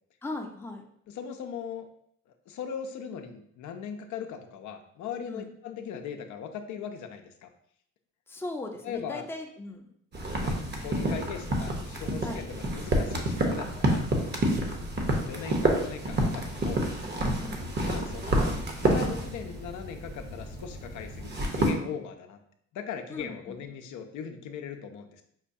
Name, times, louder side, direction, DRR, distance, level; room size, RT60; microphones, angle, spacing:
voice 1, 0.2-0.9 5.3-5.5 8.3-9.9 12.2-12.4 14.4-14.7 17.4-17.7 23.1-23.6, left 2 dB, 10° left, 2 dB, 0.5 m, -38 dB
voice 2, 1.1-1.9 2.5-7.5 8.8-9.3 10.3-14.0 15.3-16.8 17.8-22.4 22.7-25.2, left 7 dB, 75° left, 6 dB, 0.5 m, -39 dB
sound 1, 10.1-21.7, right 1 dB, 35° right, 0.8 m, -29 dB
5.5 x 2.2 x 2.6 m, 0.68 s
cardioid pair, 90°, 30 cm